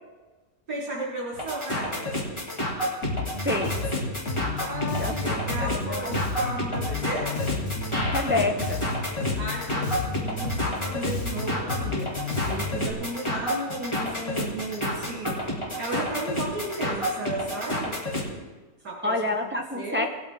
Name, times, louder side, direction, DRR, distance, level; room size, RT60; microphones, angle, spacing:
voice 1, 0.7-2.1 4.6-7.3 9.4-12.1 12.4-15.3 15.8-18.0 18.8-19.2 19.7-20.1, right 2 dB, 80° right, -8 dB, 3.9 m, -34 dB
Pcyc bottlecap pop drums, 1.3-18.3, left 1 dB, 15° left, 2.4 m, -30 dB
Bass guitar, 3.0-12.9, left 3 dB, 50° left, 1.7 m, -31 dB
voice 2, 3.4-3.8 5.0-6.1 8.1-8.8 19.0-20.1, left 2 dB, 15° right, 3 dB, 0.3 m, -28 dB
20.0 x 8.7 x 3.5 m, 1.3 s
omnidirectional pair, 1.7 m